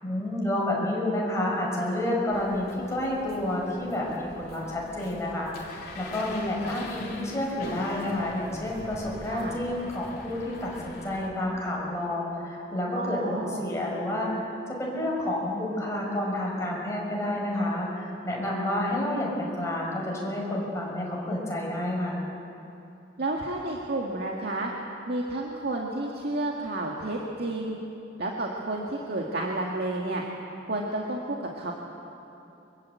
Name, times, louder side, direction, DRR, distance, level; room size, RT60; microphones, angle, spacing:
voice 1, 0.0-14.5 14.8-22.2, left 1 dB, 15° left, -3 dB, 6.4 m, -29 dB
sound 1, 2.3-11.3, left 2 dB, 55° left, 3.3 m, -44 dB
voice 2, 9.3-9.6 12.9-13.7 23.2-24.7 25.1-27.8 28.2-30.2 30.6-31.7, right 2 dB, 60° right, -1 dB, 2.0 m, -31 dB
25.0 x 21.5 x 8.5 m, 3.0 s
head